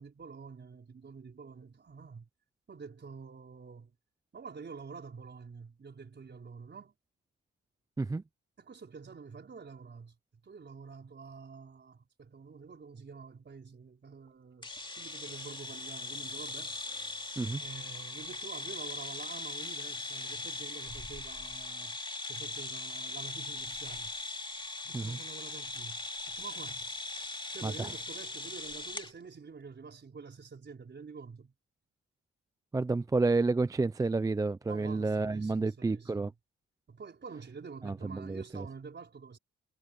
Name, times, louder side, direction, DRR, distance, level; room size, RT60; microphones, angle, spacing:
voice 1, 0.0-2.3 2.7-3.9 4.3-6.9 8.6-10.2 10.4-22.0 22.3-24.1 24.8-26.0 26.3-26.9 27.2-31.5 34.7-36.3 36.9-39.4, right 5 dB, 35° right, 5.1 m, -48 dB
sound 1, 14.6-29.1, left 3 dB, 15° left, 2.3 m, -40 dB
voice 2, 32.7-36.3 37.8-38.7, right 3 dB, 10° right, 0.3 m, -30 dB
cardioid pair, 125°, 30 cm